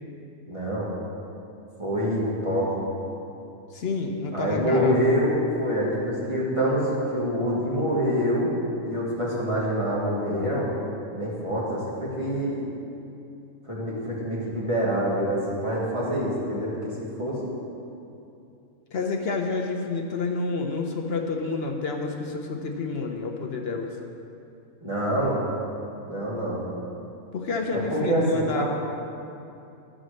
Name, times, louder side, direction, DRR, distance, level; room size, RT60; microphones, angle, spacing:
voice 1, 0.5-0.9 1.8-2.8 4.3-8.5 8.9-10.7 11.1-12.6 13.7-17.5 24.8-25.4 26.1-26.7 27.7-28.6, equal, 20° right, -7 dB, 1.7 m, -26 dB
voice 2, 3.7-5.0 18.9-24.0 27.3-28.6, left 4 dB, 55° left, 2 dB, 0.8 m, -29 dB
11.0 x 5.1 x 6.4 m, 2.7 s
omnidirectional pair, 1.5 m